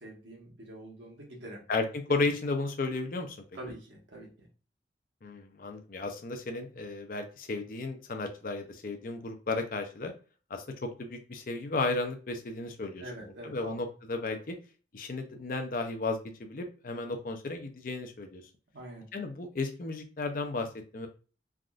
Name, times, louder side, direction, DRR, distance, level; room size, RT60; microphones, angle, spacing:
voice 1, 0.0-1.6 2.1-2.3 3.5-4.5 13.0-13.7 18.7-19.1, right 1 dB, 75° right, -1 dB, 1.1 m, -45 dB
voice 2, 1.7-3.4 5.2-10.1 10.5-14.6 14.9-18.4 19.1-20.7 20.9-21.1, left 3 dB, 50° left, 5 dB, 0.5 m, -34 dB
3.4 x 2.5 x 2.3 m, 0.36 s
head